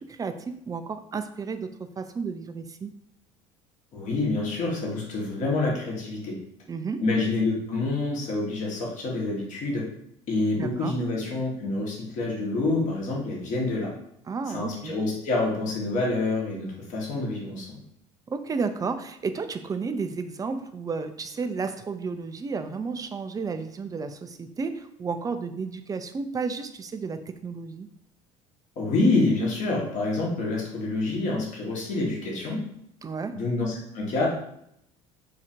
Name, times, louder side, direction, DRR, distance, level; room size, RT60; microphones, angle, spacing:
voice 1, 0.1-1.7 2.0-2.9 6.7-7.0 10.5-11.0 14.3-15.0 18.3-27.9 33.0-33.3, right 4 dB, 20° right, 9 dB, 0.4 m, -32 dB
voice 2, 3.9-6.3 7.0-9.8 10.3-13.9 14.5-17.8 28.8-32.6 33.3-34.3, left 2 dB, 50° left, -3 dB, 1.1 m, -27 dB
2.8 x 2.4 x 4.2 m, 0.73 s
hypercardioid pair, 75°, 16 cm